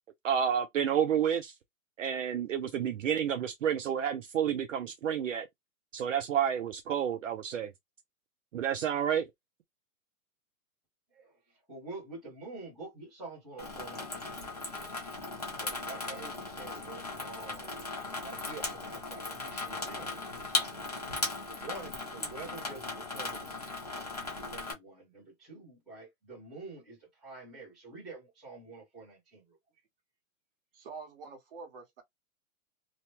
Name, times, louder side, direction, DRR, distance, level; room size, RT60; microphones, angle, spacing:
voice 1, 0.2-1.5 2.0-5.5 5.9-7.7 8.5-9.3, right 9 dB, 60° right, 0.5 m, -30 dB
voice 2, 11.7-14.3 14.6-14.7 15.6-17.8 18.2-20.2 21.4-23.7 24.4-29.6, right 3 dB, ahead, 0.7 m, -47 dB
Water tap faucet / Sink (filling or washing), 13.6-24.7, left 3 dB, 30° left, 0.4 m, -37 dB
voice 3, 30.7-32.0, right 4 dB, 40° right, 1.2 m, -46 dB
3.0 x 2.1 x 2.9 m
hypercardioid pair, 175°, 44 cm